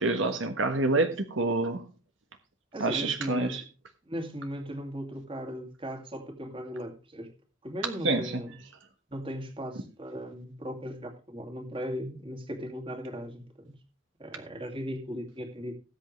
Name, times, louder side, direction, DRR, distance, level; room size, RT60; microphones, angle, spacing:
voice 1, 0.0-1.8 2.8-3.6 8.0-8.4, right 2 dB, 70° right, 1.3 m, -27 dB
voice 2, 2.7-3.6 4.0-7.3 7.6-8.5 9.1-13.7 14.2-15.7, equal, 25° right, 2.3 m, -37 dB
18.5 x 8.2 x 3.2 m
head